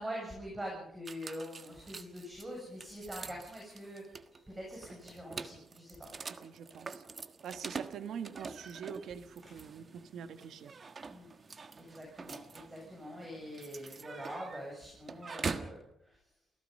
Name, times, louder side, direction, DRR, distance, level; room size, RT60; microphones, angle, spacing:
voice 1, 0.0-4.0 4.5-6.1 11.1-11.3 11.8-15.8 16.1-16.2, equal, 15° right, -2 dB, 7.6 m, -44 dB
sound 1, 1.0-15.8, right 4 dB, 40° right, 1.4 m, -45 dB
voice 2, 6.4-7.0 7.4-10.7, right 7 dB, 80° right, 10 dB, 1.6 m, -44 dB
29.0 x 16.5 x 5.5 m, 0.72 s
cardioid pair, 110°, 0 cm